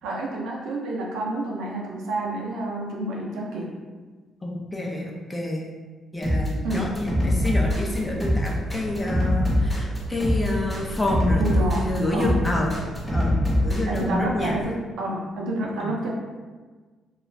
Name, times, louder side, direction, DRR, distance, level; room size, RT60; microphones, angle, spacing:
voice 1, 0.0-3.7 6.6-6.9 11.4-12.4 13.9-16.1, right 2 dB, 85° right, -2 dB, 0.5 m, -29 dB
voice 2, 4.4-5.6 6.1-12.7 13.1-13.4 13.6-14.6 15.8-15.9, left 1 dB, 20° left, -1 dB, 0.5 m, -28 dB
sound 1, 6.2-14.0, left 1 dB, ahead, 0.9 m, -23 dB
sound 2, 6.7-14.6, equal, 55° right, 0.7 m, -37 dB
2.4 x 2.3 x 3.1 m, 1.4 s
cardioid pair, 90°, 0 cm